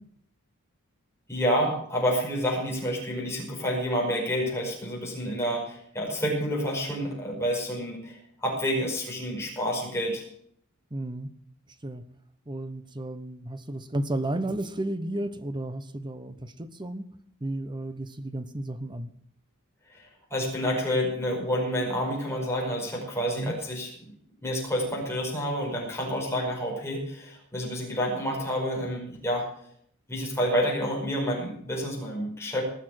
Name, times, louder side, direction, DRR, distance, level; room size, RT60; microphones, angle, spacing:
voice 1, 1.3-10.2 19.9-23.9 24.4-29.5 30.1-32.6, equal, 10° left, -2 dB, 5.1 m, -29 dB
voice 2, 10.9-11.3 11.8-12.0 12.5-17.0 17.4-19.1 23.4-23.5, right 1 dB, 20° right, 13 dB, 0.9 m, -33 dB
19.0 x 7.1 x 7.7 m, 0.66 s
head